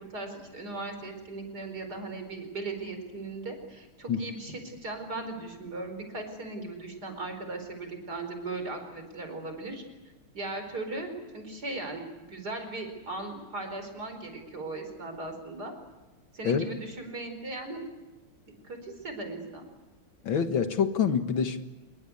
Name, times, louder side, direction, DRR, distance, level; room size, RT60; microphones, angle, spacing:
voice 1, 0.0-9.8 10.3-15.7 16.3-17.8 18.6-19.6, right 2 dB, 50° right, 6 dB, 5.3 m, -38 dB
voice 2, 20.2-21.6, left 7 dB, 70° left, 7 dB, 2.3 m, -26 dB
27.0 x 22.5 x 8.5 m, 1.1 s
omnidirectional pair, 2.2 m